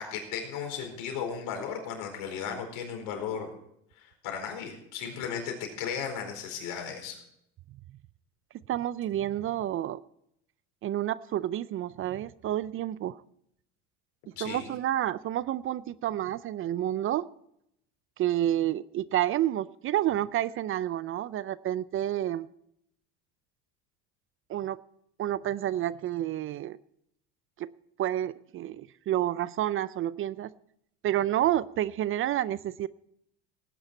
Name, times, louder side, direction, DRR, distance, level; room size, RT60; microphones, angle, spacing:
voice 1, 0.0-3.5 4.0-7.2 14.4-14.7, left 7 dB, 70° left, 3 dB, 4.7 m, -35 dB
voice 2, 8.7-10.0 10.8-13.2 14.4-17.3 18.2-22.5 24.5-24.8 25.2-26.8 27.6-27.7 28.0-30.5 31.0-32.9, right 12 dB, 40° right, 19 dB, 0.5 m, -29 dB
18.0 x 9.7 x 4.4 m, 0.75 s
supercardioid pair, 105°, 33 cm